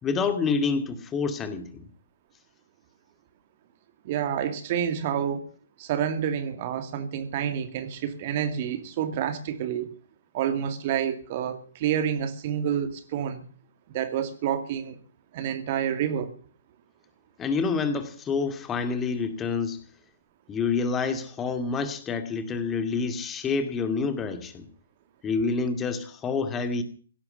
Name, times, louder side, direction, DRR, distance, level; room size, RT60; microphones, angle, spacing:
voice 1, 0.0-1.9 17.4-19.8 20.5-24.7 25.2-26.8, left 4 dB, 15° left, 2.3 m, -28 dB
voice 2, 4.0-5.5 5.8-9.9 10.3-13.4 13.9-15.0 15.3-16.3, right 9 dB, 40° right, 2.3 m, -28 dB
17.0 x 12.0 x 6.7 m
figure-of-eight pair, 130°, 0 cm